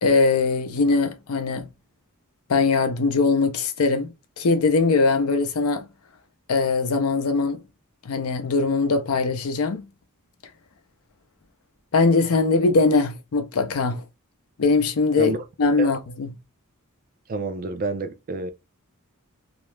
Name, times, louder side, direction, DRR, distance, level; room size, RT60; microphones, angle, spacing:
voice 1, 0.0-1.7 2.5-4.1 4.4-5.9 6.5-7.6 8.0-9.9 11.9-14.0 14.6-16.3, left 3 dB, 70° left, 0.5 m, -21 dB
voice 2, 17.3-18.5, right 3 dB, 40° right, 0.4 m, -28 dB
2.3 x 2.0 x 3.0 m
head